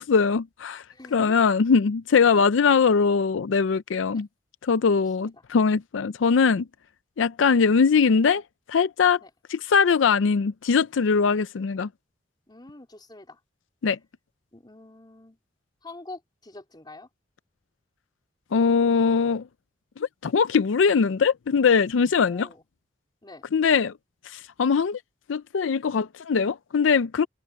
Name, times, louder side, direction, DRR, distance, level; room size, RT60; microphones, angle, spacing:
voice 1, 0.0-0.8 1.1-4.3 4.6-6.6 7.2-8.4 8.7-9.2 9.5-11.9 13.8-14.0 18.5-19.4 20.0-22.5 23.5-23.9 24.3-25.0 25.3-27.3, left 5 dB, 85° left, 0.5 m, -21 dB
voice 2, 0.9-1.4 2.3-2.5 4.1-4.2 5.2-5.4 9.2-9.3 12.5-13.4 14.5-15.4 15.8-17.1 22.3-22.6 23.2-23.5, left 2 dB, 25° left, 3.9 m, -45 dB
head